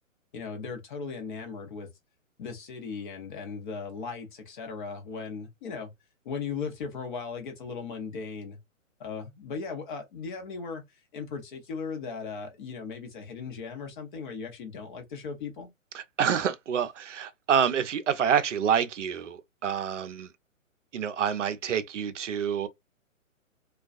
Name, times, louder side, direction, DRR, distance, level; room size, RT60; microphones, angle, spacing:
voice 1, 0.3-1.9 2.4-5.9 6.2-8.6 9.0-15.7, left 5 dB, 35° left, 0.8 m, -37 dB
voice 2, 15.9-20.3 20.9-22.7, right 8 dB, 65° right, 0.5 m, -27 dB
2.3 x 2.3 x 2.4 m
figure-of-eight pair, 130°, 41 cm